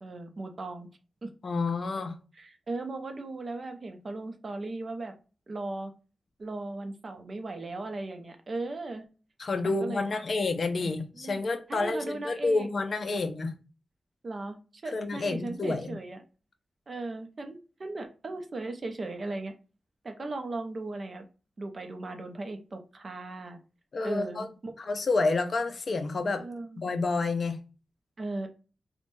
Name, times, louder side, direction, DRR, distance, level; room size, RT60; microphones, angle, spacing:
voice 1, 0.0-0.9 1.2-1.3 2.3-5.1 5.5-5.9 6.4-9.1 9.6-10.2 10.8-10.9 11.2-11.4 11.7-12.7 13.1-13.2 14.2-16.2 16.9-19.5 20.0-21.2 21.6-23.6 24.0-24.7 26.4-26.8 28.2-28.5, right 2 dB, 40° right, 0.5 m, -37 dB
voice 2, 1.4-2.1 9.4-13.5 14.9-15.9 23.9-24.5 24.8-26.5 26.8-27.6, left 3 dB, 50° left, 0.4 m, -29 dB
3.1 x 2.1 x 2.6 m
wide cardioid pair, 135°, 0 cm